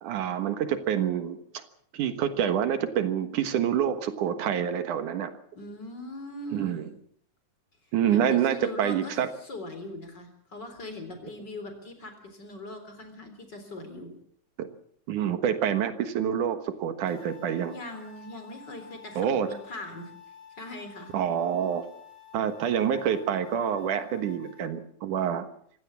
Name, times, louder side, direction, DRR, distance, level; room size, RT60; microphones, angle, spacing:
voice 1, 0.0-1.6 1.9-5.3 6.5-6.9 7.9-9.3 14.6-14.7 15.1-17.7 19.2-19.5 21.1-21.8 22.3-25.5, right 9 dB, 80° right, 10 dB, 2.9 m, -27 dB
voice 2, 5.5-7.0 8.1-9.1 9.4-14.1 17.7-20.1 20.5-21.2, left 1 dB, 35° left, 7 dB, 4.2 m, -41 dB
sound 1, 17.1-24.7, left 8 dB, 10° left, 5.4 m, -50 dB
25.0 x 16.5 x 7.2 m, 0.63 s
omnidirectional pair, 3.5 m